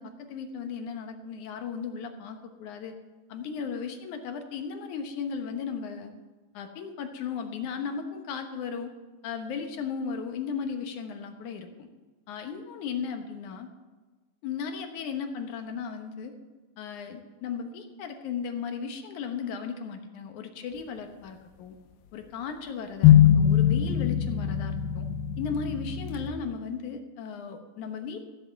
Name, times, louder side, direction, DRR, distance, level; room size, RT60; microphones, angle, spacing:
voice 1, 0.0-2.9 3.3-6.1 6.5-8.9 9.2-11.9 12.3-13.7 14.4-16.3 16.8-21.8 22.1-25.1 25.4-28.2, left 6 dB, 65° left, 5 dB, 2.3 m, -36 dB
sound 1, 23.0-26.3, left 10 dB, 85° left, 2.6 m, -21 dB
15.5 x 7.9 x 7.8 m, 1.3 s
omnidirectional pair, 4.2 m